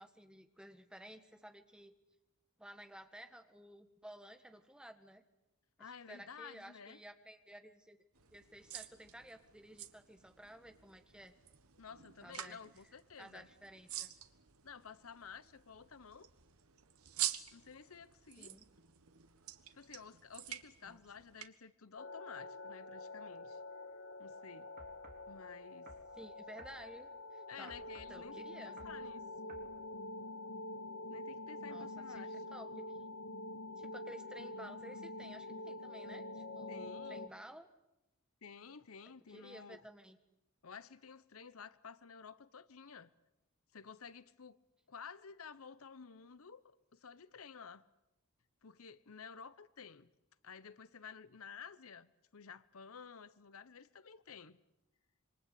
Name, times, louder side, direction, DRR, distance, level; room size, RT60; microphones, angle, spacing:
voice 1, 0.0-1.9 2.6-5.2 5.8-8.0 8.3-11.3 12.2-12.6 13.2-14.1 18.4-18.7 20.8-21.0 26.2-27.7 28.1-28.8 29.4-29.5 31.7-32.7 33.8-37.7 39.3-40.2, right 1 dB, 5° right, 1.7 m, -54 dB
voice 2, 5.8-7.0 11.8-13.5 14.6-16.3 17.5-18.6 19.7-23.6 24.2-24.7 25.3-25.9 27.5-29.3 31.1-32.3 36.7-37.2 38.4-39.8 40.6-43.1 43.7-44.6 44.9-47.9 48.6-50.1 50.4-54.6, left 6 dB, 75° left, 0.9 m, -53 dB
sound 1, 8.2-21.5, right 12 dB, 85° right, 1.5 m, -47 dB
sound 2, 22.0-37.3, left 2 dB, 60° left, 1.2 m, -46 dB
sound 3, 24.8-25.3 25.9-26.1 26.6-26.8 27.7-28.2 28.8-29.0 29.5-29.7, right 2 dB, 45° right, 3.7 m, -57 dB
27.0 x 24.0 x 8.4 m
head